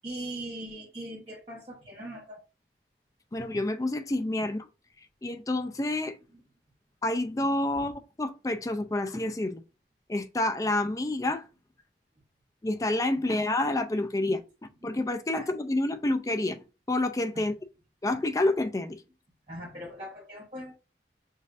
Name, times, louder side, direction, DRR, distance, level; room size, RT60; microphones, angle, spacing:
voice 1, 0.0-2.4 3.3-3.5 6.3-6.4 14.8-14.9 15.3-15.5 17.3-17.5 19.5-20.8, right 1 dB, 35° right, 1.0 m, -40 dB
voice 2, 3.3-4.7 5.2-6.2 7.0-7.9 8.2-9.6 10.1-11.5 12.6-14.4 14.8-17.5 18.0-19.0, left 2 dB, 20° left, 0.4 m, -28 dB
6.3 x 2.5 x 2.5 m
head